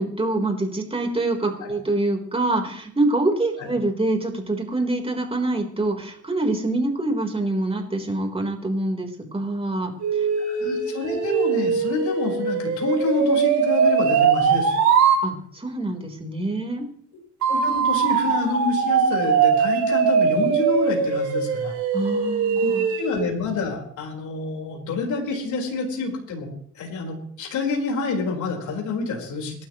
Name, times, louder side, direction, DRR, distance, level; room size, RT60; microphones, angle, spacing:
voice 1, 0.0-10.3 15.2-16.9 21.9-22.9, right 2 dB, 20° right, 2 dB, 4.0 m, -25 dB
sound 1, 10.0-15.2 17.4-23.3, right 6 dB, 80° right, 4.4 m, -21 dB
voice 2, 10.4-14.8 17.5-21.7 22.6-26.5 26.7-29.6, left 4 dB, 75° left, 0 dB, 4.6 m, -28 dB
27.0 x 12.5 x 3.1 m, 0.64 s
cardioid pair, 90°, 30 cm